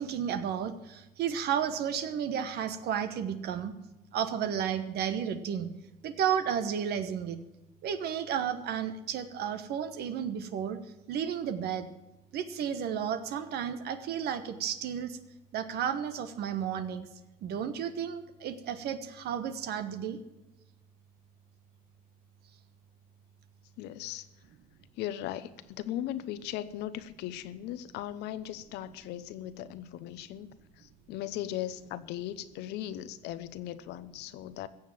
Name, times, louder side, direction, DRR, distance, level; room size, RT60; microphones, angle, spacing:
voice 1, 0.0-3.7 4.1-5.7 6.0-7.4 7.8-10.8 11.1-11.9 12.3-15.2 15.5-17.1 17.4-20.2, right 8 dB, 70° right, 10 dB, 1.2 m, -32 dB
voice 2, 23.8-24.3 25.0-34.7, left 12 dB, 90° left, 13 dB, 0.9 m, -38 dB
15.5 x 7.5 x 7.6 m, 1.0 s
cardioid pair, 110°, 17 cm